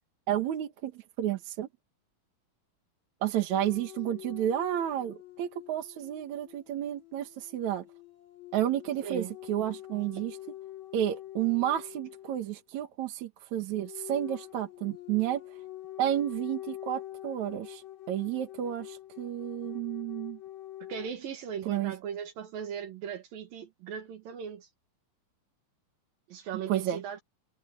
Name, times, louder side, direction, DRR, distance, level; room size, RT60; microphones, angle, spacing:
voice 1, 0.3-1.7 3.2-7.8 8.5-10.4 10.9-15.6 16.0-20.4 21.7-21.9 26.7-27.0, right 11 dB, 60° right, 2.5 m, -31 dB
sound 1, 3.5-12.6 13.7-21.1, left 14 dB, 50° left, 5.5 m, -45 dB
voice 2, 9.0-9.3 10.1-10.2 20.9-24.7 26.3-27.2, right 8 dB, 75° right, 3.5 m, -38 dB
omnidirectional pair, 4.1 m